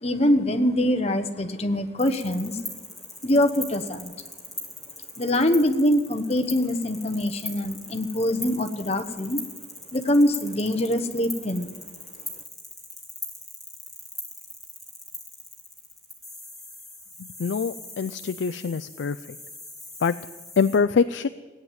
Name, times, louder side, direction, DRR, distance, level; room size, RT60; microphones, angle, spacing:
voice 1, 0.0-2.6 3.2-4.1 5.2-9.4 9.9-11.8, left 1 dB, 35° left, 7 dB, 1.1 m, -23 dB
sound 1, 2.0-20.8, left 2 dB, ahead, 2.9 m, -41 dB
voice 2, 17.4-19.2 20.0-20.1 20.6-21.3, left 5 dB, 75° left, 12 dB, 0.4 m, -24 dB
17.0 x 9.0 x 9.4 m, 1.4 s
head